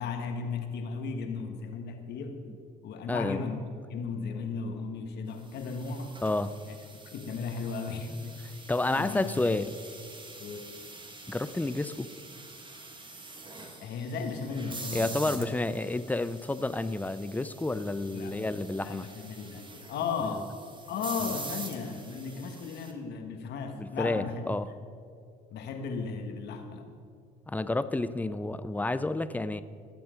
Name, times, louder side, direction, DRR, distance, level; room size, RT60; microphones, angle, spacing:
voice 1, 0.0-2.4 2.8-3.6 3.9-6.2 6.7-6.8 7.0-8.6 9.0-9.4 10.4-10.7 13.8-15.5 18.1-20.5 20.9-24.5 25.5-26.9, left 5 dB, 65° left, 5 dB, 1.5 m, -36 dB
voice 2, 3.1-3.4 6.2-6.5 8.7-9.8 11.3-12.1 14.9-19.1 21.3-21.4 23.7-24.7 27.5-29.6, left 2 dB, 10° left, 13 dB, 0.6 m, -30 dB
sound 1, 5.5-22.9, right 3 dB, 25° right, 1.7 m, -45 dB
18.5 x 7.0 x 5.1 m, 2.4 s
supercardioid pair, 70°, 18 cm